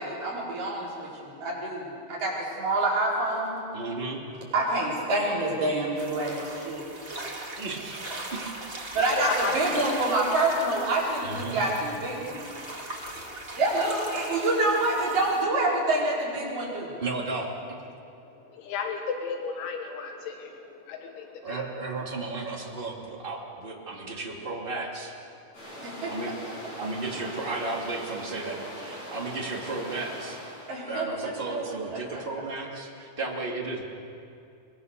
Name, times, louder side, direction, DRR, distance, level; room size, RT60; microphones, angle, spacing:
voice 1, 0.0-3.6 4.5-6.8 8.9-12.4 13.6-16.9 25.8-26.1 30.7-31.6 32.1-32.2, right 2 dB, 45° right, -5 dB, 6.2 m, -27 dB
voice 2, 3.7-4.2 7.6-8.5 11.2-11.6 17.0-17.5 21.4-25.1 26.1-26.3 26.8-30.4 30.9-33.8, right 3 dB, 20° right, -2 dB, 1.5 m, -34 dB
sound 1, 5.9-15.4, right 2 dB, 85° right, 0.5 m, -39 dB
voice 3, 9.2-9.6 12.8-13.1 18.5-20.5 20.9-21.6, left 5 dB, 80° left, 3 dB, 3.5 m, -33 dB
sound 2, 25.5-30.8, equal, 35° left, 8.8 m, -41 dB
23.5 x 22.0 x 6.8 m, 2.5 s
omnidirectional pair, 5.5 m